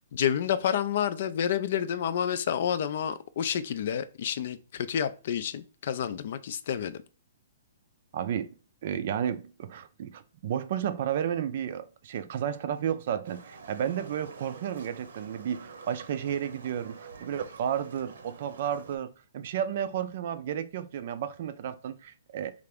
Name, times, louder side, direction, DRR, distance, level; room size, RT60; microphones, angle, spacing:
voice 1, 0.1-7.0, left 9 dB, 55° left, 0.4 m, -29 dB
voice 2, 8.1-8.5 8.8-22.5, right 9 dB, 50° right, 0.4 m, -32 dB
Livestock farm animals working animals, 13.2-19.0, right 5 dB, 75° right, 0.8 m, -48 dB
3.3 x 2.5 x 3.3 m
hypercardioid pair, 160°, 0 cm